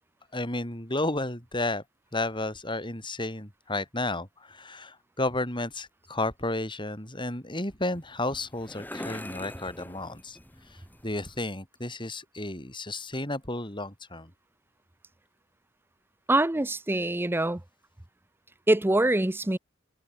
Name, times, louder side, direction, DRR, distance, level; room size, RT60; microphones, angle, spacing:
voice 1, 0.3-1.8 2.1-10.4 10.7-14.3, left 2 dB, 25° left, 7.0 m, -32 dB
sound 1, 7.8-11.4, left 1 dB, 10° left, 3.0 m, -43 dB
voice 2, 16.3-17.6 18.7-19.6, right 1 dB, 10° right, 0.6 m, -24 dB
head